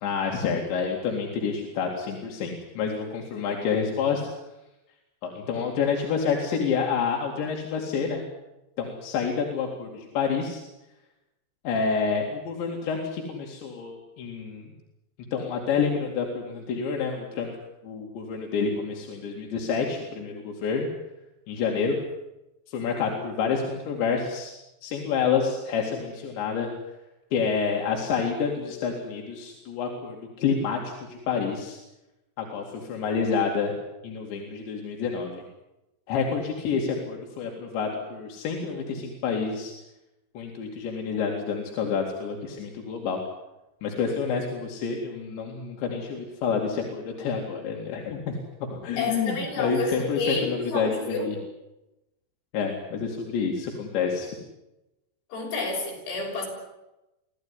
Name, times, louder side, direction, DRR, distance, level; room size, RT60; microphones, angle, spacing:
voice 1, 0.0-4.3 5.2-8.2 8.8-10.6 11.6-14.7 15.3-17.5 17.8-20.9 21.5-22.0 22.7-24.5 24.8-26.7 27.3-31.8 32.4-33.7 34.0-35.4 36.1-39.7 40.3-43.2 43.8-51.4 52.5-54.4, left 5 dB, 90° left, 1 dB, 4.8 m, -28 dB
voice 2, 49.0-51.3 55.3-56.5, left 3 dB, 70° left, 0 dB, 8.5 m, -30 dB
25.5 x 16.5 x 9.8 m, 0.95 s
omnidirectional pair, 5.0 m